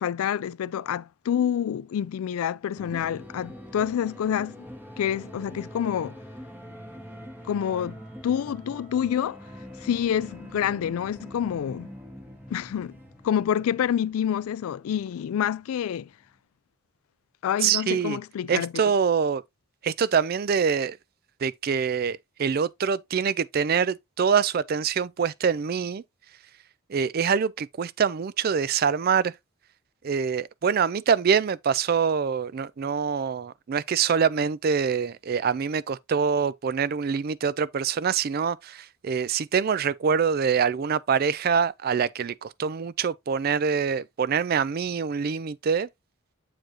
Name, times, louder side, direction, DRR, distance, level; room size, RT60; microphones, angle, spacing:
voice 1, 0.0-4.6 5.0-6.1 7.5-9.4 9.8-11.9 12.5-12.9 13.2-16.1 17.4-18.7, left 9 dB, 80° left, 0.3 m, -27 dB
sound 1, 2.8-16.4, equal, 10° right, 1.4 m, -44 dB
voice 2, 17.6-18.2 18.5-19.4 19.8-21.0 21.4-26.0 26.9-29.3 30.0-45.9, right 6 dB, 45° right, 0.4 m, -25 dB
7.7 x 4.6 x 2.8 m
head